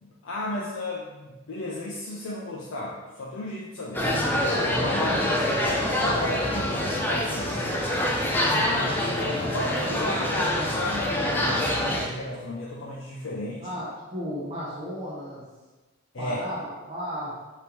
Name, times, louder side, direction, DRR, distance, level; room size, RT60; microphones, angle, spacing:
voice 1, 0.0-4.1 4.7-5.3 5.9-7.7 8.5-13.7 16.1-16.4, left 1 dB, 85° left, -4 dB, 0.6 m, -34 dB
sound 1, 3.9-12.1, left 1 dB, 10° left, 0.4 m, -25 dB
voice 2, 5.1-5.5 13.6-15.4 16.2-17.4, equal, 30° right, -9 dB, 0.9 m, -35 dB
4.4 x 2.9 x 3.4 m, 1.2 s
head